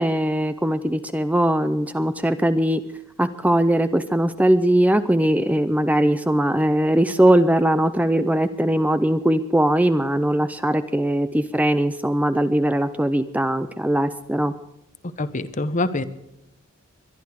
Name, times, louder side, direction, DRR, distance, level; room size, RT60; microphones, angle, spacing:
voice 1, 0.0-2.8 3.2-14.5, right 1 dB, 5° right, 11 dB, 0.6 m, -20 dB
voice 2, 15.2-16.0, left 2 dB, 35° left, 13 dB, 1.0 m, -25 dB
22.5 x 11.5 x 4.8 m, 0.85 s
head